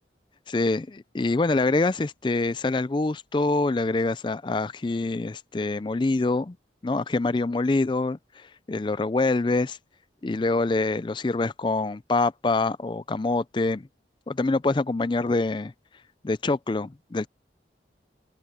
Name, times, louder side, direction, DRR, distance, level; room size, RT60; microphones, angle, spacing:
voice 1, 0.5-6.6 6.8-9.8 10.2-13.9 14.3-15.7 16.2-17.3, left 3 dB, 25° left, 0.4 m, -25 dB
open air
head